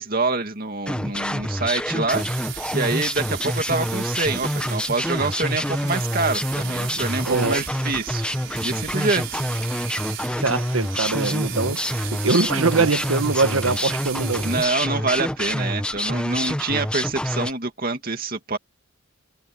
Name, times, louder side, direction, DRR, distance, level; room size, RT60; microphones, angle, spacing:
voice 1, 0.0-8.2 8.6-9.5 14.4-18.6, right 3 dB, 45° right, 2.4 m, -26 dB
sound 1, 0.9-17.5, left 1 dB, 5° left, 1.0 m, -27 dB
sound 2, 2.1-14.7, right 12 dB, 60° right, 6.1 m, -36 dB
voice 2, 6.9-7.6 10.4-14.5 16.4-16.5, right 3 dB, 80° right, 1.4 m, -23 dB
head